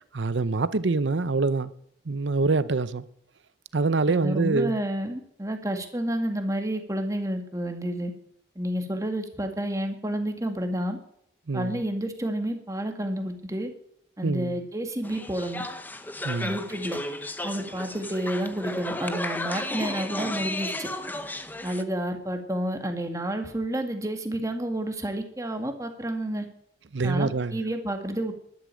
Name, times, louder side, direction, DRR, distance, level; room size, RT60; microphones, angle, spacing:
voice 1, 0.1-1.7 2.1-3.0 3.7-4.8 11.5-11.8 14.2-14.6 16.2-16.5 26.9-27.6, right 3 dB, 90° right, 0.7 m, -25 dB
voice 2, 4.1-8.1 8.6-11.0 11.5-13.7 14.2-15.6 16.4-17.0 17.4-20.9 21.6-26.4 27.0-28.3, right 1 dB, 20° right, 1.9 m, -30 dB
sound 1, 15.0-21.8, left 1 dB, 10° left, 0.8 m, -34 dB
11.5 x 10.0 x 9.0 m
head